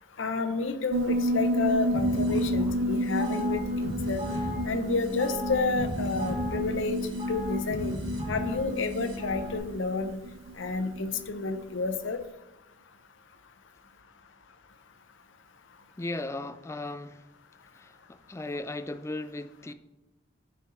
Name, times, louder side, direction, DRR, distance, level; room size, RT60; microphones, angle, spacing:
voice 1, 0.2-4.2 4.6-7.0 7.3-8.0 8.3-10.2 10.6-12.2, left 3 dB, 80° left, 0.7 m, -30 dB
Piano, 0.9-11.6, equal, 80° right, 0.4 m, -31 dB
sound 1, 1.9-9.6, left 1 dB, 25° right, 2.0 m, -35 dB
voice 2, 16.0-17.2 17.8-19.7, left 2 dB, 15° left, 0.3 m, -36 dB
10.0 x 4.1 x 4.2 m
head